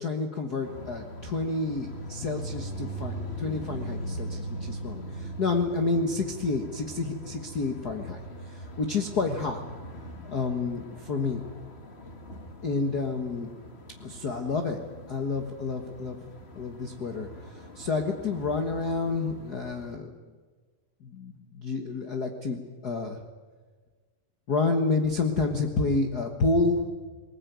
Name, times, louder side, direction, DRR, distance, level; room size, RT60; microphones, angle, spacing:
voice 1, 0.0-9.6 10.2-11.4 12.6-13.5 14.0-14.8 15.1-16.2 16.5-20.1 21.0-23.2 24.5-26.9, left 3 dB, 70° left, 4 dB, 0.9 m, -29 dB
sound 1, 0.6-20.0, equal, 25° left, 1.3 m, -41 dB
21.0 x 20.0 x 9.4 m, 1.4 s
omnidirectional pair, 4.1 m